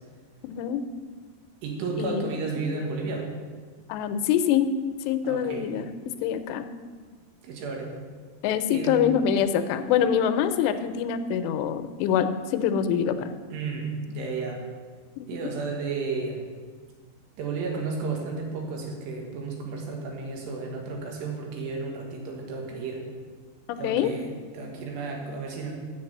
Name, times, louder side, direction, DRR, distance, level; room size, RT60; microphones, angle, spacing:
voice 1, 0.4-0.8 2.0-2.4 3.9-4.7 5.1-5.9 6.2-6.7 8.4-13.3 15.2-15.4 23.8-24.1, left 8 dB, 85° left, 10 dB, 2.8 m, -25 dB
voice 2, 1.6-3.3 5.2-5.7 7.4-8.0 8.7-9.0 13.5-14.6 15.3-16.5 17.4-23.1 23.8-25.7, right 4 dB, 80° right, 1 dB, 3.6 m, -32 dB
7.4 x 7.2 x 7.8 m, 1.5 s
omnidirectional pair, 4.9 m